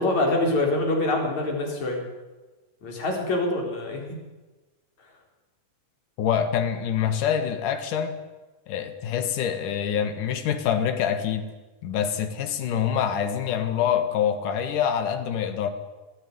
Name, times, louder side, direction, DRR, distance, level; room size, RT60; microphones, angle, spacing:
voice 1, 0.0-2.0 2.8-4.0, left 2 dB, 65° left, 1 dB, 5.2 m, -25 dB
voice 2, 6.2-8.2 8.7-11.5 11.8-15.7, left 8 dB, 85° left, 8 dB, 3.1 m, -25 dB
22.5 x 16.0 x 9.4 m, 1.2 s
omnidirectional pair, 3.6 m